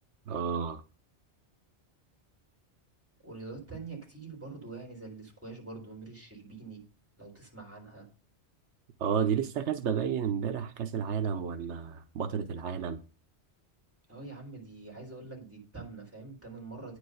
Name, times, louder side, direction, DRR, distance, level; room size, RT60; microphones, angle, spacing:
voice 1, 0.3-0.8 9.0-13.0, right 7 dB, 80° right, 1.1 m, -31 dB
voice 2, 3.2-6.8 7.2-8.1 14.1-17.0, right 3 dB, 10° right, 3.6 m, -45 dB
9.4 x 5.1 x 6.4 m
omnidirectional pair, 1.2 m